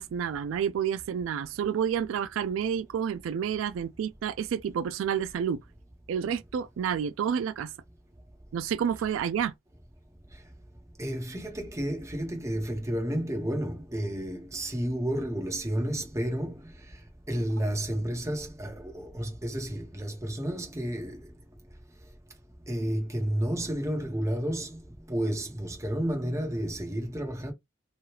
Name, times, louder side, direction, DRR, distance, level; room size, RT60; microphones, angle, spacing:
voice 1, 0.0-5.6 6.1-7.7 8.5-9.5, right 8 dB, 85° right, 0.3 m, -29 dB
voice 2, 11.0-16.6 17.3-21.3 22.7-24.8 25.1-27.5, right 1 dB, 15° right, 0.9 m, -31 dB
3.1 x 2.3 x 2.9 m
head